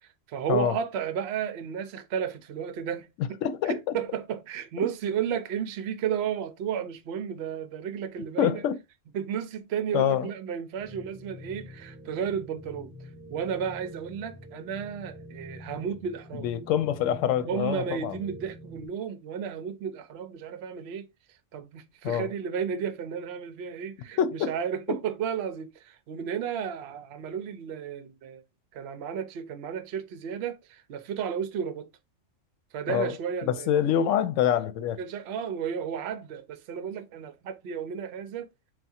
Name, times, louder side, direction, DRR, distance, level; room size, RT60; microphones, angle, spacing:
voice 1, 0.0-3.4 3.6-8.7 9.1-16.5 17.5-21.1 21.5-28.4 28.7-31.9 32.7-34.1 35.0-38.5, right 8 dB, 65° right, 0.8 m, -33 dB
voice 2, 3.2-3.8 4.8-4.9 8.4-8.8 9.9-10.3 16.3-18.2 22.0-22.3 24.2-24.5 24.9-25.0 32.9-33.2 33.4-35.0, left 9 dB, 80° left, 0.9 m, -26 dB
sound 1, 10.8-18.9, left 1 dB, 5° right, 0.8 m, -46 dB
3.6 x 2.3 x 4.2 m
omnidirectional pair, 1.3 m